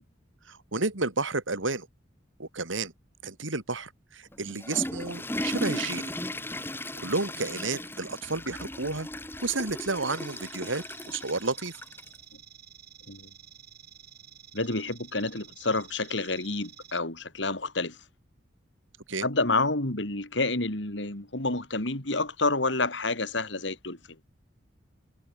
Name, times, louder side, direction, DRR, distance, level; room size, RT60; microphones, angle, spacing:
voice 1, 0.5-1.9 2.4-2.9 3.2-6.1 6.9-9.1 9.4-11.8 19.1-19.3, right 3 dB, 80° right, 3.0 m, -31 dB
Water / Toilet flush, 4.3-12.2, left 1 dB, 10° left, 5.8 m, -36 dB
sound 1, 10.1-17.0, right 11 dB, 55° right, 7.6 m, -51 dB
voice 2, 14.5-18.0 19.2-24.0, left 3 dB, 65° left, 3.8 m, -29 dB
head